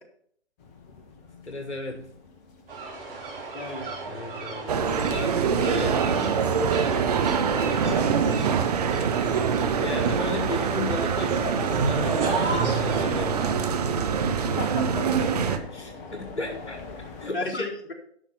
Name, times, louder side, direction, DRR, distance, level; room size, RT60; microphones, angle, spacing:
sound 1, 0.6-17.3, left 4 dB, 15° left, 0.6 m, -47 dB
voice 1, 1.4-2.1 4.1-8.3 9.0-13.6 15.2-16.8 17.2-17.7, left 2 dB, 80° left, 5 dB, 1.3 m, -36 dB
sound 2, 2.7-13.5, right 3 dB, 55° right, 3.6 m, -33 dB
voice 2, 3.5-3.9 14.6-15.3 16.4-16.6 17.3-17.9, left 2 dB, 50° left, 2 dB, 2.4 m, -33 dB
sound 3, 4.7-15.6, right 6 dB, 35° right, 0.7 m, -24 dB
11.0 x 5.7 x 5.5 m, 0.65 s
figure-of-eight pair, 130°, 34 cm